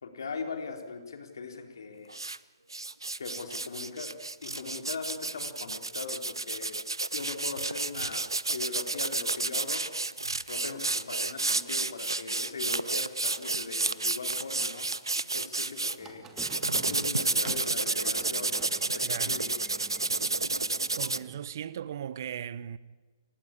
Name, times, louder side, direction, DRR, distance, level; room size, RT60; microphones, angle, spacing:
voice 1, 0.0-2.1 3.2-6.8 7.1-9.8 10.5-14.9 15.3-16.3 16.8-18.6 18.9-19.5, left 4 dB, 60° left, 3.8 m, -40 dB
sound 1, 2.1-2.4 2.7-16.0 16.4-21.2, right 3 dB, 80° right, 0.8 m, -31 dB
Squeak, 16.0-21.4, right 4 dB, 15° right, 2.6 m, -48 dB
voice 2, 19.0-19.5 21.0-22.8, right 9 dB, 50° right, 1.0 m, -38 dB
29.5 x 16.5 x 8.8 m
figure-of-eight pair, 130°, 2 cm